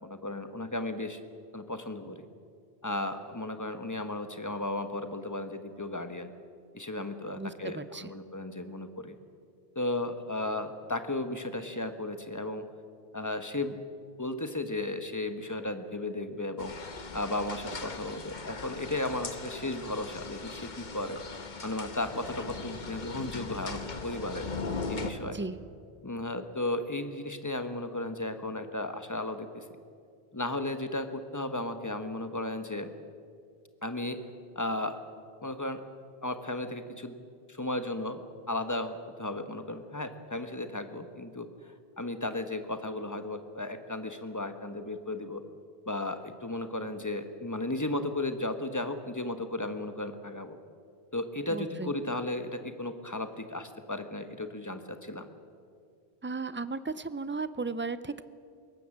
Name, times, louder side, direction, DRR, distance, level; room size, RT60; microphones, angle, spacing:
voice 1, 0.0-1.2 1.5-2.3 2.8-6.3 6.7-9.2 9.7-12.7 13.1-13.8 14.2-16.7 17.1-21.2 21.6-24.5 24.9-25.4 26.0-29.7 30.3-32.9 33.8-34.2 34.5-35.0 35.4-35.8 36.2-38.2 38.5-41.5 42.0-45.4 45.9-50.6 51.1-55.3, left 2 dB, 15° left, 8 dB, 1.2 m, -35 dB
voice 2, 7.3-8.1 25.2-25.6 51.5-51.9 56.2-58.2, right 3 dB, 20° right, 14 dB, 0.3 m, -35 dB
sound 1, 16.6-25.1, left 4 dB, 45° left, 1.3 m, -39 dB
22.0 x 18.0 x 7.3 m, 2.3 s
omnidirectional pair, 1.1 m